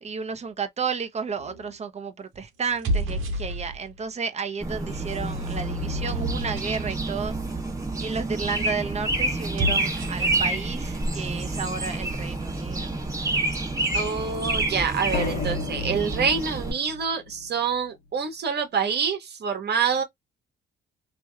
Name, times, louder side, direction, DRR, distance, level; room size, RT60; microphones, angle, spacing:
voice 1, 0.0-7.4 8.0-12.9, right 5 dB, 35° right, 0.8 m, -32 dB
sound 1, 1.4-1.8 2.6-4.0 4.7-7.0 9.4-10.3, equal, 90° right, 1.4 m, -31 dB
sound 2, 4.6-16.7, right 2 dB, 15° right, 1.4 m, -28 dB
voice 2, 13.9-20.0, right 6 dB, 55° right, 1.3 m, -26 dB
sound 3, 15.1-17.8, left 3 dB, 60° left, 1.2 m, -34 dB
3.1 x 3.0 x 2.3 m
cardioid pair, 90°, 20 cm